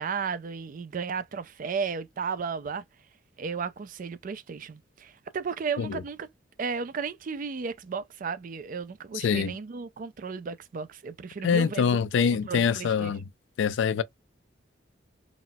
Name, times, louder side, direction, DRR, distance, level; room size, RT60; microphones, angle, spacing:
voice 1, 0.0-2.8 3.4-6.3 6.6-12.0 12.5-13.1, right 5 dB, 45° right, 0.4 m, -34 dB
voice 2, 9.1-9.6 11.4-13.2 13.6-14.0, left 6 dB, 65° left, 0.3 m, -25 dB
4.0 x 2.0 x 2.2 m
head